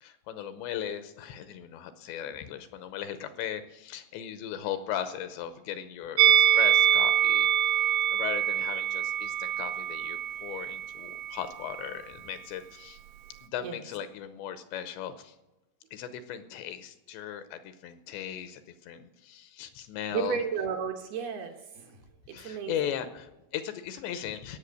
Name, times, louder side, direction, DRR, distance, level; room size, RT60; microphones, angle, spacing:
voice 1, 0.0-7.5 8.1-13.0 13.4-15.4 15.9-20.4 22.3-24.6, left 10 dB, 85° left, 10 dB, 2.7 m, -37 dB
Musical instrument, 6.2-11.4 11.7-11.9, right 10 dB, 85° right, 3.1 m, -25 dB
voice 2, 20.1-22.0 22.3-23.0, right 7 dB, 70° right, 3 dB, 2.6 m, -33 dB
18.0 x 7.2 x 6.4 m, 1.0 s
omnidirectional pair, 5.5 m